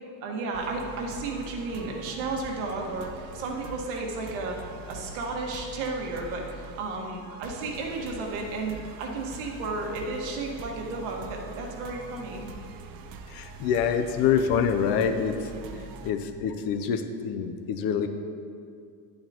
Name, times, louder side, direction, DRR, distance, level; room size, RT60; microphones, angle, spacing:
voice 1, 0.2-12.5 15.7-15.8, right 3 dB, 80° right, 0 dB, 1.6 m, -33 dB
sound 1, 0.5-16.1, right 3 dB, 50° right, 0.6 m, -43 dB
voice 2, 13.3-15.5 16.0-18.1, left 7 dB, 50° left, 8 dB, 0.6 m, -26 dB
11.0 x 8.7 x 2.9 m, 2.4 s
cardioid pair, 165°, 45 cm